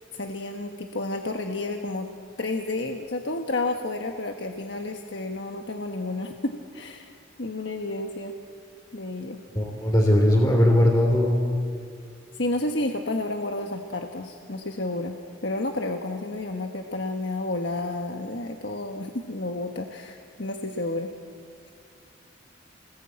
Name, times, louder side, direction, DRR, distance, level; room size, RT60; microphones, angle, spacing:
voice 1, 0.1-2.1 2.4-7.1 7.4-8.3 8.9-9.4 12.3-15.2 15.4-21.1, left 2 dB, 60° left, 4 dB, 1.4 m, -31 dB
voice 2, 9.5-11.4, left 1 dB, 20° left, 0 dB, 3.1 m, -19 dB
29.0 x 21.0 x 8.8 m, 2.3 s
head